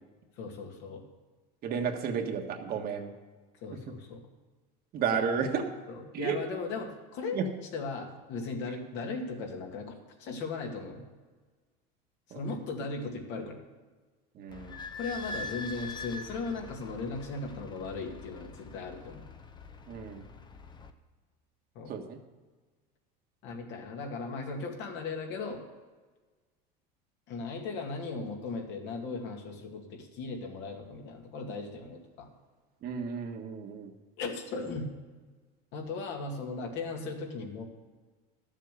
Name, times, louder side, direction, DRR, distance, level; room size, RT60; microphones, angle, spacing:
voice 1, 0.4-1.0 3.6-4.2 5.1-5.3 5.9-7.4 7.7-11.1 12.3-13.6 15.0-19.2 21.7-21.9 23.4-25.6 27.3-32.3 34.2-34.9 35.7-37.6, left 4 dB, 60° left, 1 dB, 2.3 m, -37 dB
voice 2, 1.6-3.1 3.9-4.0 4.9-5.6 6.1-6.4 7.3-7.5 12.3-12.4 14.3-14.8 19.9-20.2 21.9-22.2 32.8-33.9, right 6 dB, 45° right, 3 dB, 1.5 m, -32 dB
Idling / Squeak, 14.5-20.9, left 3 dB, 20° left, 0.8 m, -44 dB
12.0 x 7.4 x 6.9 m, 1.3 s
supercardioid pair, 120°, 21 cm